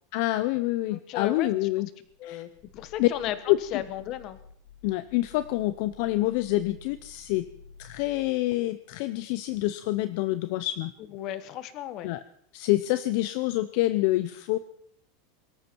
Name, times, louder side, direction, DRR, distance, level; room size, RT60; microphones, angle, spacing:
voice 1, 0.1-1.9 2.2-2.4 3.0-3.1 3.5-3.8 4.8-7.5 7.8-10.9 12.0-12.2 12.5-14.6, left 17 dB, 55° left, 13 dB, 0.6 m, -27 dB
voice 2, 0.9-1.5 2.2-4.4 11.1-12.1, left 12 dB, 40° left, 13 dB, 1.2 m, -35 dB
Growling, 2.0-8.4, left 6 dB, 90° left, 3.6 m, -53 dB
23.0 x 13.5 x 4.6 m, 0.67 s
supercardioid pair, 150°, 0 cm